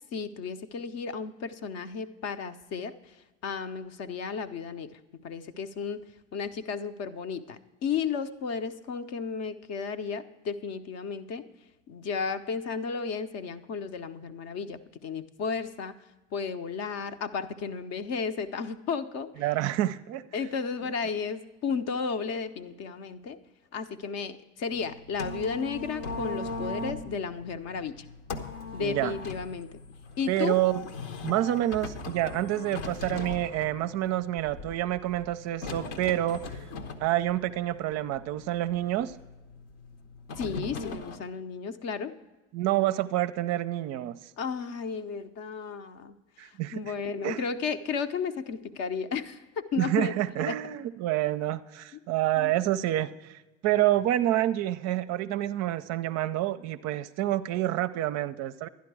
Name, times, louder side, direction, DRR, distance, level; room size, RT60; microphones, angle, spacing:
voice 1, 0.1-11.5 11.9-15.9 16.3-19.3 20.3-23.4 23.7-28.1 28.7-29.8 30.2-30.6 40.4-42.1 44.4-46.2 46.4-50.1 50.5-50.6 52.4-52.5, left 5 dB, 45° left, 10 dB, 0.7 m, -33 dB
voice 2, 19.4-20.2 28.8-29.1 30.3-30.8 31.2-36.5 37.0-39.1 42.5-44.2 46.4-46.8 47.2-47.5 49.8-58.7, right 14 dB, 45° right, 12 dB, 0.5 m, -28 dB
sound 1, 24.7-41.2, left 3 dB, 70° left, 1.1 m, -40 dB
12.0 x 10.5 x 4.7 m, 1.1 s
hypercardioid pair, 70°, 37 cm